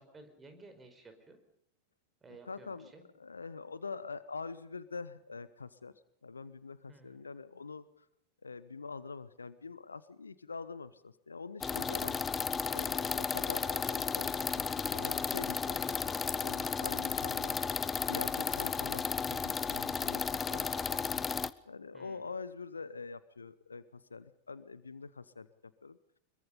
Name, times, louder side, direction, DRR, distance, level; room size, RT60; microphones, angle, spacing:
voice 1, 0.0-1.4 2.2-3.0 6.9-7.3 21.9-22.3, right 3 dB, 15° right, 7 dB, 4.8 m, -55 dB
voice 2, 2.4-5.9 6.2-8.1 8.4-14.6 14.9-15.8 16.4-17.5 18.1-21.0 21.7-26.0, left 4 dB, 75° left, 16 dB, 1.1 m, -45 dB
sound 1, 11.6-21.5, left 5 dB, 15° left, 0.9 m, -34 dB
25.0 x 22.5 x 5.3 m, 0.72 s
figure-of-eight pair, 90°, 0 cm